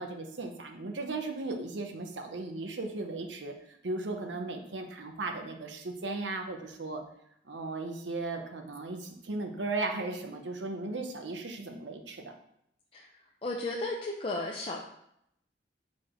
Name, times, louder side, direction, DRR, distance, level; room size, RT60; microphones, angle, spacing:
voice 1, 0.0-7.0 7.5-12.3, right 2 dB, 85° right, 4 dB, 0.8 m, -36 dB
voice 2, 13.4-14.8, left 2 dB, 30° left, -1 dB, 0.5 m, -34 dB
4.7 x 4.2 x 4.9 m, 0.75 s
head